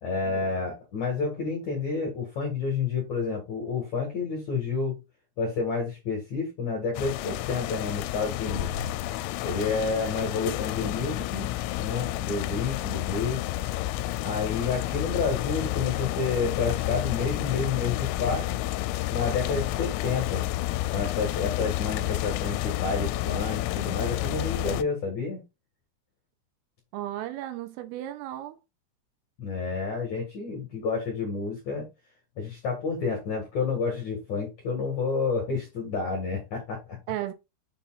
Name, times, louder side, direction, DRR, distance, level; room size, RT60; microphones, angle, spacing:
voice 1, 0.0-5.0 5.4-8.8 9.4-11.5 11.8-13.4 14.2-18.5 19.1-20.5 20.9-25.4 29.4-31.9 32.4-37.0, left 4 dB, 65° left, 1.8 m, -29 dB
sound 1, 6.9-24.8, left 15 dB, 85° left, 3.0 m, -30 dB
voice 2, 26.9-28.6 37.1-37.3, right 13 dB, 85° right, 3.3 m, -34 dB
6.9 x 6.8 x 2.4 m
omnidirectional pair, 6.0 m